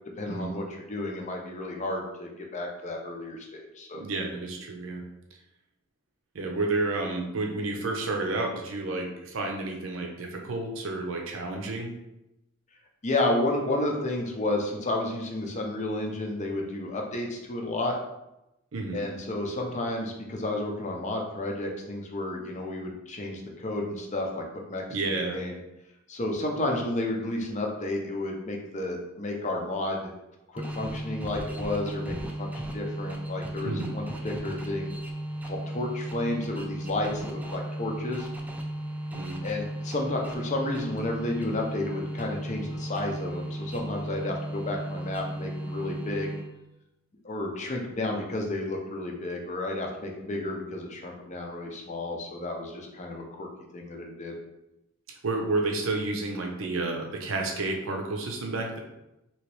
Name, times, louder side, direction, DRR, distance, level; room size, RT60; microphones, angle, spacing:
voice 1, 0.2-4.0 13.0-18.0 18.9-24.4 24.7-25.6 26.1-30.1 30.5-34.9 35.4-38.3 39.4-46.4 47.2-53.5 53.7-54.4, left 2 dB, 35° left, 1 dB, 0.6 m, -32 dB
voice 2, 3.9-5.0 6.3-12.0 18.7-19.0 24.9-25.4 33.6-33.9 39.1-39.4 55.2-58.8, right 2 dB, 80° right, 2 dB, 0.6 m, -30 dB
sound 1, 30.6-46.7, right 1 dB, 10° right, 0.3 m, -35 dB
3.1 x 2.9 x 3.0 m, 0.90 s
head